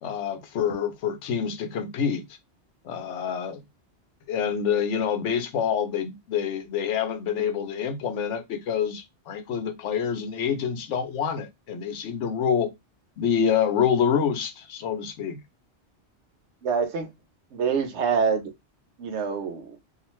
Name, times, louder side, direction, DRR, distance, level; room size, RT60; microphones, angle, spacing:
voice 1, 0.0-2.2 2.8-3.6 4.3-12.7 13.2-15.4, left 7 dB, 90° left, 0.9 m, -27 dB
voice 2, 16.6-17.1 17.5-18.5 19.0-19.8, right 6 dB, 75° right, 0.9 m, -26 dB
2.4 x 2.3 x 3.0 m
omnidirectional pair, 1.2 m